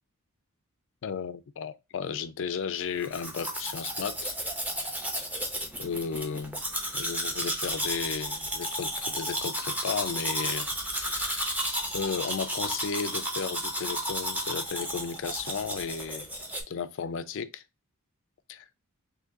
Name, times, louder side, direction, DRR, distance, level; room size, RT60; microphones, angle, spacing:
voice 1, 1.0-4.4 5.8-6.6 6.9-11.5 11.9-16.3 16.7-17.6 18.5-18.6, left 6 dB, 55° left, 0.4 m, -34 dB
Domestic sounds home sounds, 3.0-16.6, equal, 5° right, 0.6 m, -33 dB
3.8 x 2.7 x 2.6 m
head